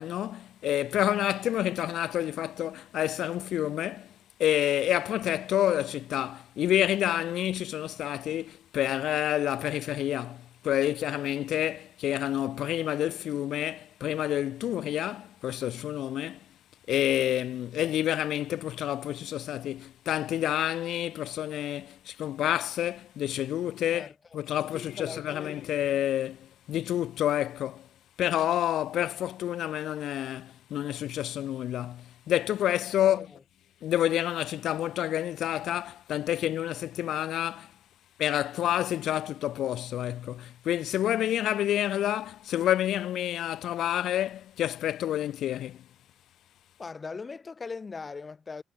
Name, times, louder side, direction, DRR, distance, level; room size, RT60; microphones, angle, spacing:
voice 1, 0.0-4.1 4.4-16.4 16.9-27.9 28.2-33.3 33.8-37.7 38.2-45.8, left 12 dB, 75° left, 1.4 m, -29 dB
voice 2, 23.9-25.6 33.0-33.3 46.8-48.6, left 4 dB, 30° left, 4.4 m, -40 dB
cardioid pair, 90°, 0 cm